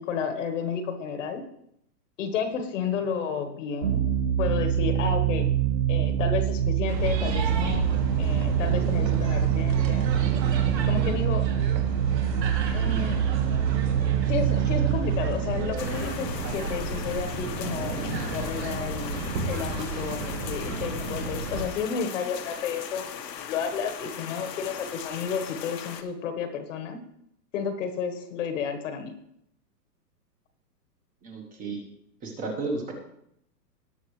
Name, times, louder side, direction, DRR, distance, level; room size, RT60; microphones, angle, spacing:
voice 1, 0.0-1.4 2.2-4.0 4.4-5.6 5.9-7.9 8.2-10.1 10.9-11.5 12.7-13.2 14.3-23.1 23.5-27.0 27.5-29.2, left 6 dB, 45° left, 8 dB, 1.4 m, -31 dB
sound 1, 3.8-17.1, right 11 dB, 65° right, 4.8 m, -25 dB
sound 2, 6.9-21.7, right 3 dB, 80° right, 2.6 m, -32 dB
sound 3, 15.8-26.0, left 8 dB, 75° left, 1.4 m, -39 dB
voice 2, 31.2-31.8 32.2-32.9, right 3 dB, 15° right, 2 dB, 1.2 m, -32 dB
18.5 x 6.5 x 3.2 m, 0.74 s
hypercardioid pair, 160°, 50 cm